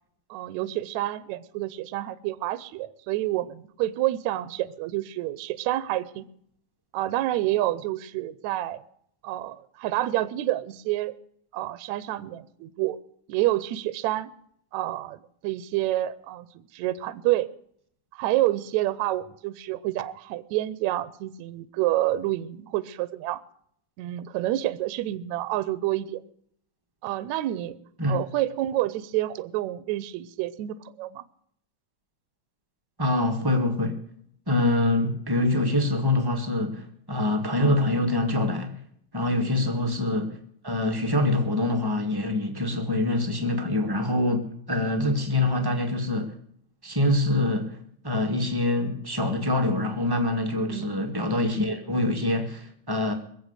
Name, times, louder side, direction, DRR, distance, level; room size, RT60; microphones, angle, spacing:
voice 1, 0.3-6.3 6.9-8.8 9.2-11.2 11.5-13.0 13.3-14.3 14.7-17.5 18.1-23.4 24.0-26.2 27.0-27.8 28.1-31.2 39.4-39.7 50.6-50.9, right 15 dB, 75° right, 1.8 m, -28 dB
voice 2, 33.0-34.0 34.5-38.7 39.1-40.4 40.6-46.3 46.8-47.8 48.0-53.1, left 2 dB, 25° right, 0.5 m, -25 dB
22.0 x 7.7 x 8.1 m
omnidirectional pair, 3.7 m